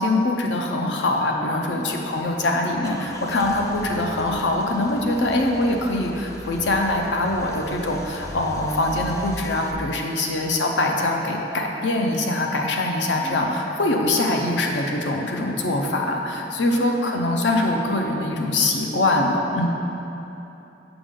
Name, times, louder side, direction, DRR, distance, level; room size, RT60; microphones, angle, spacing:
voice 1, 0.0-19.7, left 2 dB, 90° left, 1 dB, 0.6 m, -23 dB
voice 2, 1.6-2.0 13.1-13.6 16.7-17.2, left 2 dB, ahead, -8 dB, 1.2 m, -36 dB
Car / Engine starting / Idling, 2.8-9.7, left 1 dB, 15° left, 0.4 m, -38 dB
6.9 x 6.0 x 3.7 m, 3.0 s
head